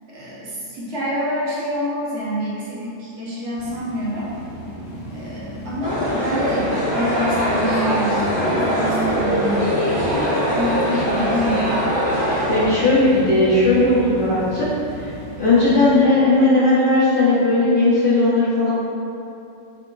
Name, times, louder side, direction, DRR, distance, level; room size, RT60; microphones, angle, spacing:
voice 1, 0.1-4.3 5.1-9.8 10.5-11.7, equal, 65° right, -7 dB, 1.0 m, -26 dB
sound 1, 3.6-16.0, equal, 85° left, 1.1 m, -35 dB
sound 2, 5.8-12.7, equal, 30° right, 0.7 m, -21 dB
voice 2, 12.5-14.7 15.0-15.1 15.4-18.7, left 2 dB, 50° left, -10 dB, 0.7 m, -17 dB
3.7 x 3.4 x 2.2 m, 2.7 s
omnidirectional pair, 1.4 m